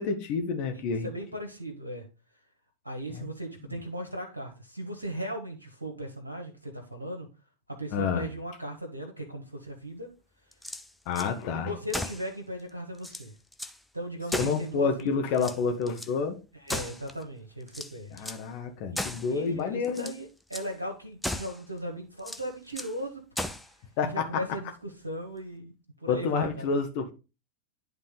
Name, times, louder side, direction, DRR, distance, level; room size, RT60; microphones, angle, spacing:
voice 1, 0.0-1.1 3.1-3.3 7.9-8.2 11.1-11.7 14.4-16.4 18.1-20.1 24.0-24.4 26.1-27.1, left 5 dB, 45° left, 1.2 m, -29 dB
voice 2, 0.7-2.1 2.8-7.3 7.7-10.1 11.5-13.3 13.9-15.1 16.5-18.3 18.9-23.2 24.0-25.7 26.0-26.7, equal, 80° right, 1.4 m, -37 dB
sound 1, 10.5-11.3 11.9-12.3 12.7-12.8 13.0-13.8 14.3-15.0 15.3-16.1 16.7-17.3 17.7-18.5 19.0-19.3 19.8-20.2 20.5-20.7 21.2-21.6 22.2-23.0 23.4-23.7, left 1 dB, 5° left, 0.6 m, -36 dB
11.0 x 3.6 x 3.8 m
figure-of-eight pair, 90°, 0 cm